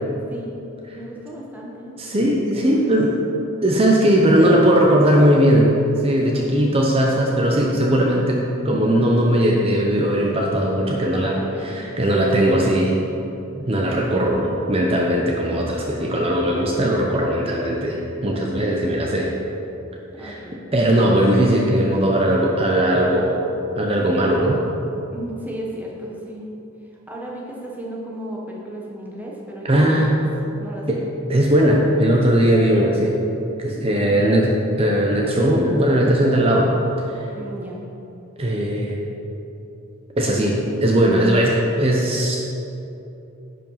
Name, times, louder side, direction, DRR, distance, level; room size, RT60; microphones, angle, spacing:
voice 1, 1.0-2.0 2.6-2.7 6.3-6.8 11.1-11.8 15.9-16.4 18.9-19.1 20.1-20.6 25.1-26.5 27.1-30.2 30.6-31.1 33.9-34.4 37.3-37.8 40.4-40.8, right 1 dB, 10° right, -3 dB, 1.1 m, -35 dB
voice 2, 2.0-3.2 3.6-5.7 6.0-13.0 13.6-19.3 20.2-20.4 20.7-23.4 23.8-24.6 29.6-30.1 30.9-31.0 31.3-33.2 33.6-34.5 34.8-36.7 37.1-37.3 38.4-39.0 40.2-42.4, right 1 dB, 25° right, -1 dB, 0.8 m, -18 dB
10.5 x 5.2 x 5.6 m, 2.9 s
head